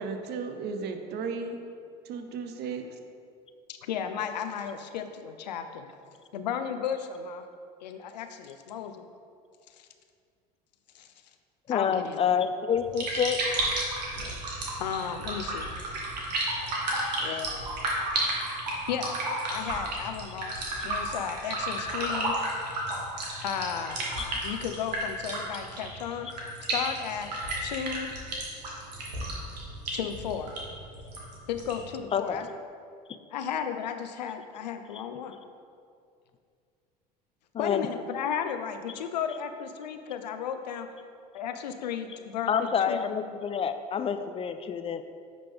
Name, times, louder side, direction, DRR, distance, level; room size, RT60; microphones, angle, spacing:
voice 1, 0.0-1.6 2.0-3.0, right 5 dB, 50° right, 6 dB, 0.8 m, -35 dB
voice 2, 3.9-5.9 6.3-7.4 7.8-9.0 10.9-11.1 11.7-12.4 14.8-15.7 17.2-18.3 18.9-19.2 19.5-20.5 20.8-22.4 23.4-24.1 24.4-27.3 27.6-28.1 29.9-30.5 31.5-32.4 33.3-35.4 37.6-40.9 41.3-43.1, left 8 dB, 85° left, 8 dB, 0.5 m, -34 dB
voice 3, 11.7-13.4 32.1-32.5 37.5-37.9 42.5-45.0, left 7 dB, 30° left, 9 dB, 0.4 m, -27 dB
sound 1, 12.7-31.9, right 1 dB, 85° right, 1.3 m, -33 dB
9.8 x 3.8 x 3.5 m, 2.3 s
hypercardioid pair, 75°, 21 cm